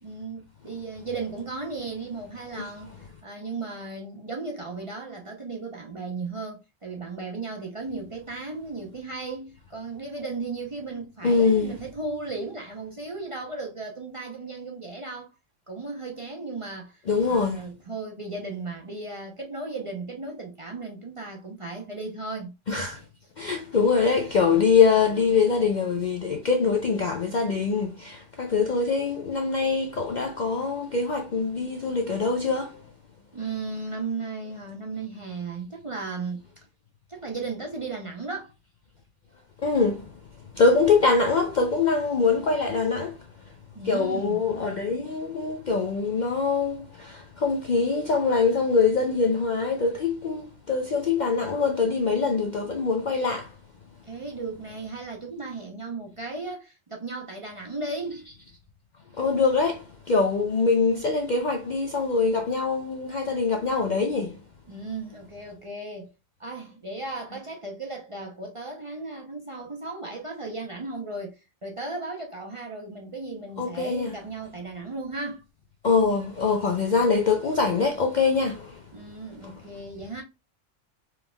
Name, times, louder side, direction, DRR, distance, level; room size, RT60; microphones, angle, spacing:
voice 1, 0.0-2.9 3.2-15.3 15.7-22.6 23.4-23.6 33.3-36.4 37.1-38.5 43.7-44.4 54.1-58.3 64.7-66.1 66.4-75.4 78.9-80.2, right 3 dB, 35° right, 0.6 m, -35 dB
voice 2, 11.2-11.7 17.1-17.7 22.7-23.0 23.4-32.8 39.6-40.2 40.5-43.2 43.8-53.6 59.1-64.4 73.6-74.1 75.8-78.8 79.4-79.5, left 4 dB, 55° left, 0.5 m, -24 dB
4.6 x 3.5 x 2.2 m
omnidirectional pair, 1.3 m